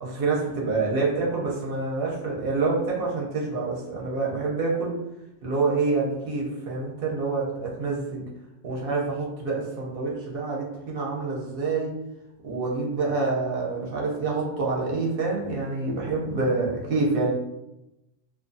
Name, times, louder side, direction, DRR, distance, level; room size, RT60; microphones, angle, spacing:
voice 1, 0.0-5.0 5.4-8.3 8.6-11.9 12.4-17.3, right 3 dB, 55° right, -3 dB, 0.7 m, -27 dB
2.5 x 2.2 x 2.5 m, 0.91 s
omnidirectional pair, 1.3 m